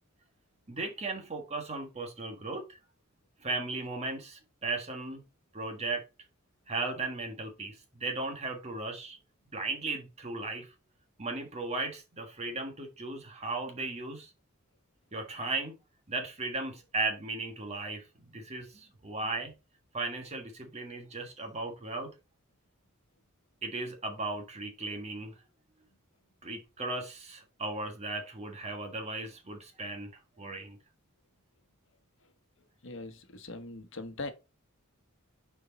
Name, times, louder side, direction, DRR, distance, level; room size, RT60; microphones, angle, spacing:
voice 1, 0.7-2.8 3.4-5.2 5.5-6.0 6.7-9.2 9.5-10.7 11.2-14.3 15.1-15.7 16.1-19.5 19.9-22.1 23.6-25.3 26.4-30.8, right 3 dB, 30° right, 1.5 m, -36 dB
voice 2, 32.8-34.3, left 2 dB, 60° left, 1.1 m, -41 dB
6.5 x 4.6 x 4.1 m
head